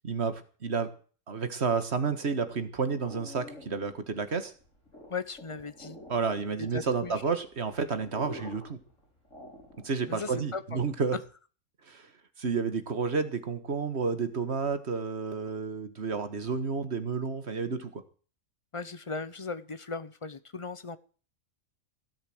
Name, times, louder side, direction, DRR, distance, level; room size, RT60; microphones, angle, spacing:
voice 1, 0.0-0.9 1.3-4.5 6.1-8.8 9.8-11.2 11.9-12.1 12.4-18.0, right 5 dB, 50° right, 10 dB, 1.9 m, -31 dB
sound 1, 2.2-10.1, left 1 dB, 65° left, 6.6 m, -48 dB
voice 2, 5.1-6.0 6.6-7.2 10.1-10.8 18.7-21.0, left 4 dB, 25° left, 14 dB, 0.8 m, -37 dB
17.0 x 8.0 x 7.9 m, 0.40 s
omnidirectional pair, 1.5 m